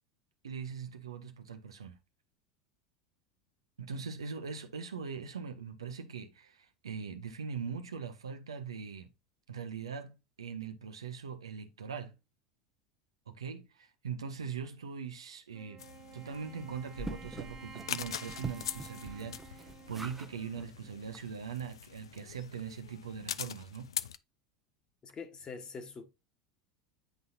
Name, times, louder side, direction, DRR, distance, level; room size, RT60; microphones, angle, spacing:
voice 1, 0.4-2.0 3.8-9.1 9.5-12.1 13.3-15.8 16.1-23.9, right 6 dB, 85° right, 0.8 m, -41 dB
Wind instrument woodwind instrument, 15.5-21.3, right 7 dB, 25° right, 1.5 m, -53 dB
sound 1, 15.8-24.2, left 9 dB, 80° left, 0.3 m, -43 dB
sound 2, 17.0-20.3 20.6-20.7 21.1-21.2 21.5-21.6, right 1 dB, 10° right, 0.7 m, -45 dB
voice 2, 25.0-26.0, left 5 dB, 30° left, 1.3 m, -44 dB
9.2 x 4.0 x 2.7 m
hypercardioid pair, 80°, 3 cm